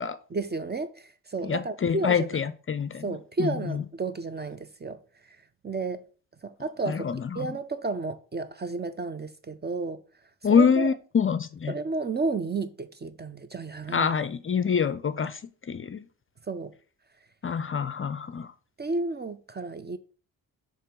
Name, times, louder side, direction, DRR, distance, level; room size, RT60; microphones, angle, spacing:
voice 1, 0.3-2.4 3.0-5.4 5.6-6.1 6.4-7.1 7.3-10.0 10.5-10.9 11.7-14.1 16.5-16.7 18.8-20.0, right 3 dB, 25° right, 0.5 m, -32 dB
voice 2, 1.4-3.1 3.4-3.8 6.9-7.5 10.4-11.7 13.9-15.4 15.7-16.1 17.4-18.5, left 6 dB, 30° left, 0.5 m, -26 dB
6.6 x 3.1 x 5.1 m
hypercardioid pair, 50°, 46 cm